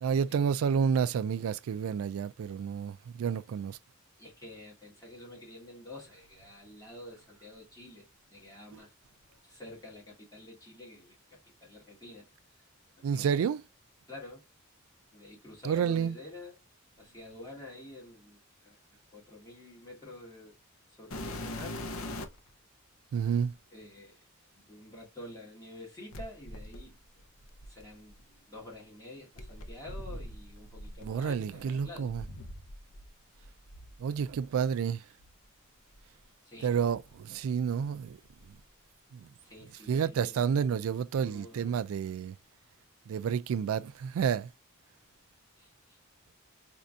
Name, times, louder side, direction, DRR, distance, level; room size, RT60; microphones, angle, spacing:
voice 1, 0.0-3.8 13.0-13.6 15.6-16.2 23.1-23.5 31.0-32.2 34.0-35.0 36.6-38.2 39.9-42.3 43.1-44.5, right 7 dB, 75° right, 0.3 m, -30 dB
voice 2, 4.2-8.9 9.3-12.3 13.0-13.4 14.1-14.4 15.1-16.6 17.0-18.8 19.1-20.5 20.9-21.8 23.7-24.2 24.5-27.0 27.6-32.1 36.4-36.7 39.4-40.4 41.1-41.9 45.6-46.0, left 1 dB, 20° left, 1.3 m, -49 dB
sound 1, 21.1-22.5 23.4-23.5 26.1-28.2 29.4-33.1 33.4-34.4 35.2-35.3 35.9-36.0 36.7-37.8 38.1-38.6 39.9-40.0, left 1 dB, 75° left, 0.7 m, -43 dB
4.2 x 2.6 x 2.3 m
head